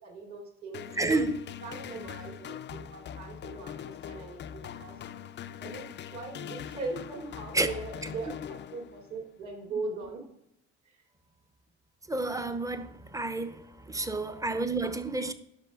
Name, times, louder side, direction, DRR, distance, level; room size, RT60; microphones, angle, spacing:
voice 1, 0.0-1.3 1.6-5.0 5.6-10.3 10.8-11.0 13.9-14.1, right 3 dB, 55° right, 2.8 m, -40 dB
sound 1, 0.7-9.2, left 9 dB, 30° left, 0.4 m, -42 dB
voice 2, 1.0-1.4 7.5-7.7 12.1-15.3, right 2 dB, 10° right, 0.7 m, -30 dB
12.0 x 6.0 x 2.4 m
hypercardioid pair, 60°, 35 cm